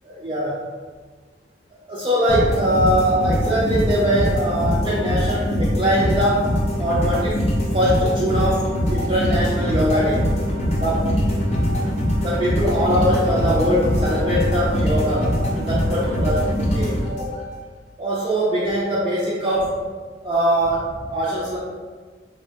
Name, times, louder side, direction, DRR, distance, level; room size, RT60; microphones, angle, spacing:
voice 1, 0.0-0.6 1.9-7.4 7.7-10.3 10.8-11.2 11.6-11.7 12.2-17.4 18.0-19.8 20.2-21.6, equal, 30° right, -9 dB, 0.5 m, -22 dB
sound 1, 2.3-17.5, equal, 35° left, 0.5 m, -22 dB
3.2 x 2.1 x 2.7 m, 1.5 s
head